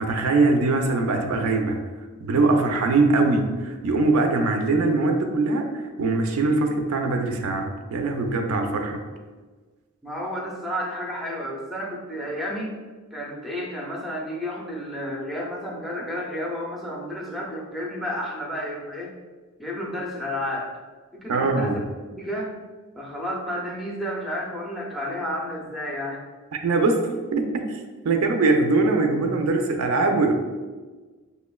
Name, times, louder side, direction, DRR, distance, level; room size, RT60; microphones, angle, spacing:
voice 1, 0.0-1.8 2.2-9.0 21.3-21.8 26.6-30.3, right 3 dB, 75° right, 5 dB, 0.4 m, -22 dB
voice 2, 10.0-12.7 13.1-19.2 19.6-20.8 21.1-21.8 22.2-22.5 23.0-26.2, equal, ahead, -3 dB, 0.4 m, -31 dB
5.4 x 2.1 x 2.2 m, 1.4 s
head